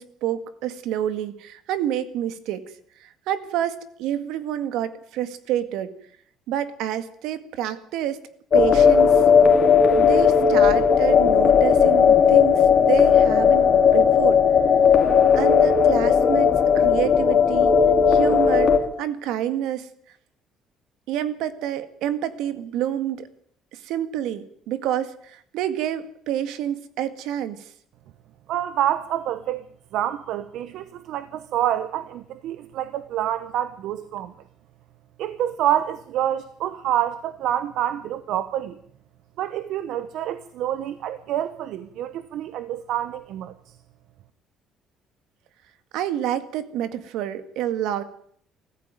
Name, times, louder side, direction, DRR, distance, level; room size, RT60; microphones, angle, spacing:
voice 1, 0.0-2.6 3.0-5.9 6.5-8.2 8.5-9.2 10.0-14.4 15.3-17.7 18.1-18.7 19.0-19.9 21.1-23.3 23.8-27.6 45.9-48.0, right 11 dB, 80° right, 12 dB, 1.9 m, -28 dB
sound 1, 8.5-18.8, left 7 dB, 35° left, 2.5 m, -16 dB
voice 2, 28.5-29.6 29.9-34.3 35.2-38.8 39.4-43.5, right 11 dB, 65° right, 13 dB, 1.0 m, -27 dB
20.5 x 14.5 x 9.1 m, 0.65 s
cardioid pair, 170°, 0 cm